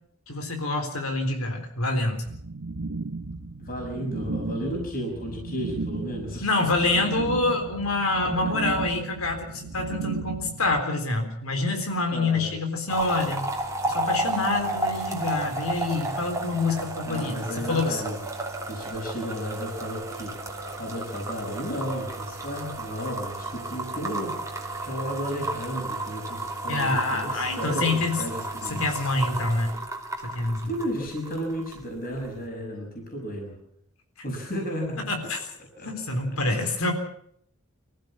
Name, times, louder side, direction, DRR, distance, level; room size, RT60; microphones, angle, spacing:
voice 1, 0.3-2.2 6.4-13.5 13.9-18.0 26.7-28.2 28.7-29.7 30.2-30.7 35.1-35.4 35.8-36.9, left 2 dB, 70° left, 5 dB, 3.8 m, -26 dB
sound 1, 2.2-10.8, right 2 dB, 70° right, 1.2 m, -35 dB
voice 2, 3.6-6.5 8.2-8.3 12.1-12.5 17.1-18.2 18.7-20.3 20.8-24.6 24.8-29.1 30.6-33.6 34.2-35.2 35.8-35.9 36.5-36.9, equal, 40° left, 0 dB, 6.2 m, -33 dB
sound 2, 12.9-31.8 32.1-32.5, right 2 dB, 15° right, 2.8 m, -33 dB
25.5 x 15.0 x 7.4 m, 0.69 s
head